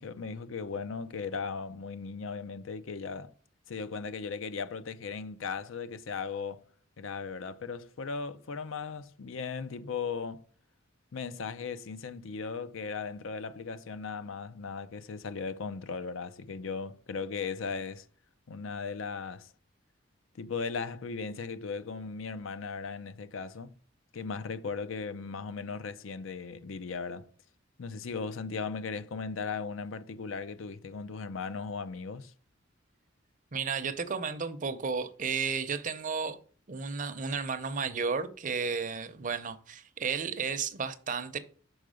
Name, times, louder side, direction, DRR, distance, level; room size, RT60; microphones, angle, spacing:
voice 1, 0.0-3.3 3.7-6.6 7.0-10.4 11.1-18.1 18.5-19.5 20.3-23.7 24.1-27.3 27.8-32.3, left 5 dB, 80° left, 0.5 m, -37 dB
voice 2, 33.5-36.4 36.7-41.4, right 5 dB, 40° right, 0.6 m, -33 dB
6.3 x 4.6 x 4.9 m
head